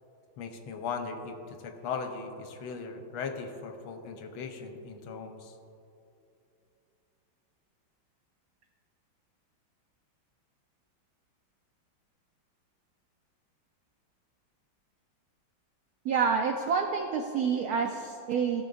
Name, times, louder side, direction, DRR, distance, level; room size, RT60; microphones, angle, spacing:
voice 1, 0.4-5.5, left 5 dB, 85° left, 5 dB, 1.6 m, -38 dB
voice 2, 16.0-18.6, right 6 dB, 85° right, 4 dB, 0.8 m, -28 dB
16.0 x 6.6 x 2.5 m, 2.7 s
omnidirectional pair, 2.2 m